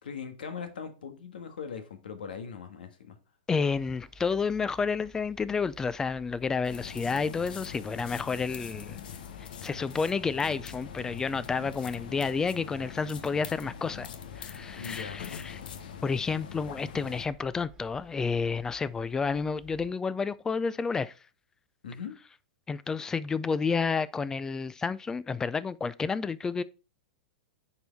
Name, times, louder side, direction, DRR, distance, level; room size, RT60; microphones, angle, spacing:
voice 1, 0.0-3.2 14.8-15.3 21.8-22.1, left 6 dB, 90° left, 1.5 m, -40 dB
voice 2, 3.5-9.0 9.6-14.1 14.4-15.6 16.0-21.1 22.7-26.6, left 5 dB, 10° left, 0.4 m, -30 dB
sound 1, 3.7-19.9, equal, 10° right, 1.4 m, -55 dB
sound 2, 6.6-17.3, left 8 dB, 75° left, 0.9 m, -43 dB
9.5 x 4.5 x 3.5 m
hypercardioid pair, 140°, 5 cm